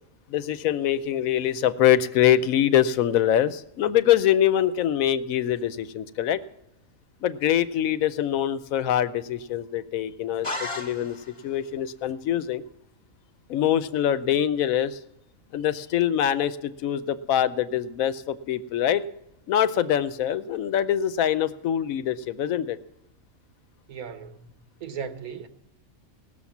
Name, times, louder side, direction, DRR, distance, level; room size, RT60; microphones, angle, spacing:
voice 1, 0.3-6.4 7.2-11.2 11.4-12.6 13.5-15.0 15.5-19.0 19.5-22.8, left 10 dB, 75° left, 1.1 m, -24 dB
sound 1, 10.4-11.5, left 2 dB, 20° left, 1.4 m, -34 dB
voice 2, 23.9-25.5, right 7 dB, 85° right, 1.6 m, -37 dB
18.5 x 6.9 x 7.2 m
omnidirectional pair, 1.5 m